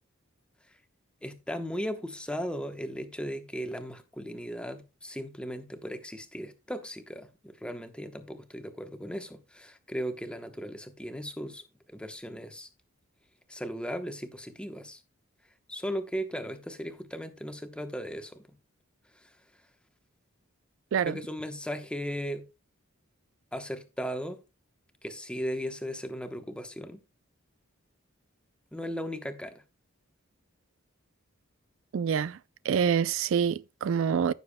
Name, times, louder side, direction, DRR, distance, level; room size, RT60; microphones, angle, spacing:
voice 1, 1.2-12.7 13.5-15.0 15.7-18.4 19.1-19.4 21.0-22.5 23.5-24.4 25.0-27.0 28.7-29.6, equal, 5° left, 0.9 m, -37 dB
voice 2, 31.9-32.4 32.6-34.3, right 7 dB, 70° right, 0.3 m, -26 dB
15.0 x 6.8 x 2.2 m
head